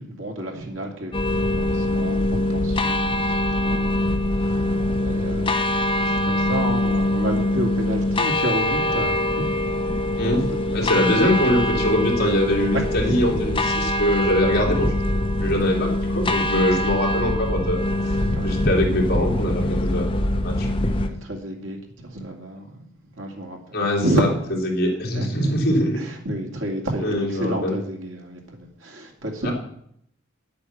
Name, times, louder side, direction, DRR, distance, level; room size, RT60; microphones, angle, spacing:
voice 1, 0.0-10.4 10.8-11.3 12.7-14.0 16.2-16.5 17.5-17.7 18.3-18.5 20.6-22.8 23.2-24.2 25.1-25.5 25.9-29.5, right 1 dB, 85° right, 1 dB, 2.5 m, -31 dB
sound 1, 1.1-21.1, left 1 dB, 25° left, 1.0 m, -23 dB
voice 2, 10.2-14.9 15.4-17.9 18.4-20.7 23.7-24.3 24.6-26.0 27.0-27.8 29.4-29.5, left 1 dB, 55° left, -1 dB, 3.1 m, -23 dB
10.0 x 8.5 x 6.5 m, 0.70 s
head